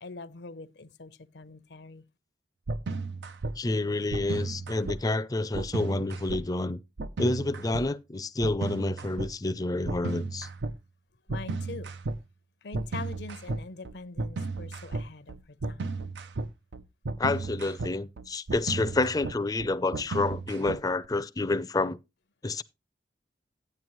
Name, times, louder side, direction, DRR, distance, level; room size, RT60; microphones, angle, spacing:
voice 1, 0.0-2.0 11.3-12.0 12.6-16.0, left 3 dB, 70° left, 0.7 m, -43 dB
sound 1, 2.7-3.5 4.1-5.0 5.5-6.4 7.0-7.8 8.4-9.3 9.8-10.7 11.3-12.2 12.7-21.1, right 3 dB, 80° right, 0.6 m, -34 dB
voice 2, 3.6-6.8 7.2-10.5 17.2-22.0 22.4-22.6, left 2 dB, 20° left, 0.5 m, -29 dB
10.5 x 9.3 x 3.1 m
head